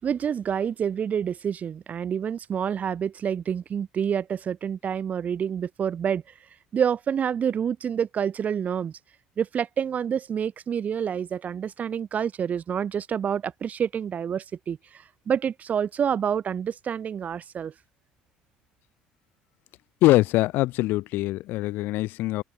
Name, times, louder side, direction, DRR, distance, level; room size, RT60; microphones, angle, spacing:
voice 1, 0.0-6.2 6.7-9.0 9.4-17.7, right 8 dB, 45° right, 6.1 m, -28 dB
voice 2, 20.0-22.4, left 18 dB, 70° left, 1.6 m, -23 dB
supercardioid pair, 75°, 4 cm